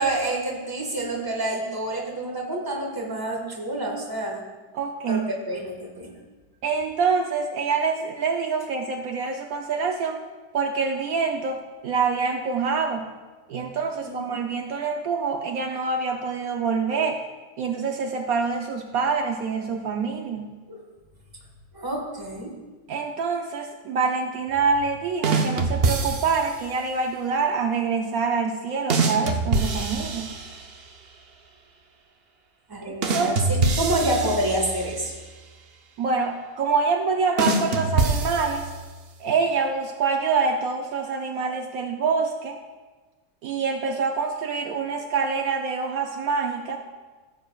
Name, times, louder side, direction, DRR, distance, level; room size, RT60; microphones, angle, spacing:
voice 1, 0.0-4.4 5.0-6.2 14.0-14.2 20.7-20.8 21.7-22.5 32.7-35.1, right 1 dB, 15° right, -1 dB, 1.4 m, -28 dB
voice 2, 4.7-5.3 6.6-10.2 10.5-13.0 13.5-17.2 17.6-20.5 22.9-30.3 32.9-33.4 36.0-38.7 39.2-42.6 43.4-46.8, right 5 dB, 70° right, 3 dB, 1.1 m, -26 dB
sound 1, 25.2-26.6 28.9-30.9 33.0-35.2 37.4-39.0, right 3 dB, 50° right, 0.8 m, -25 dB
15.5 x 7.1 x 2.3 m, 1.3 s
omnidirectional pair, 1.6 m